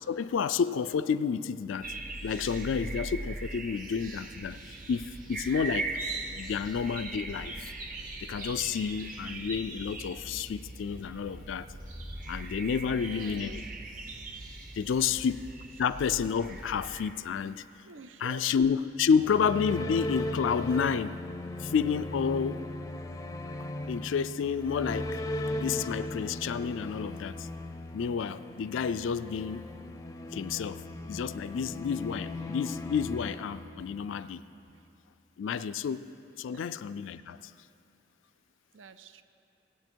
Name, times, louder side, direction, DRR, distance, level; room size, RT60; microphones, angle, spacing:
voice 1, 0.1-1.9 2.2-5.9 6.3-7.6 8.2-11.7 12.3-13.6 14.7-15.4 15.8-17.6 18.2-21.2 21.6-22.7 23.9-25.2 25.6-27.5 27.9-29.7 30.3-34.4 35.4-36.1 36.4-37.4, left 6 dB, 80° left, 13 dB, 0.4 m, -30 dB
sound 1, 1.8-17.1, right 2 dB, 45° right, 1.0 m, -40 dB
voice 2, 12.7-13.6 14.8-15.2 17.9-18.4 33.8-33.9 34.7-34.8 36.5-36.6 38.7-39.2, right 5 dB, 85° right, 11 dB, 0.6 m, -49 dB
sound 2, 19.0-34.3, left 1 dB, 15° left, 0.5 m, -38 dB
18.5 x 8.6 x 4.5 m, 2.7 s
head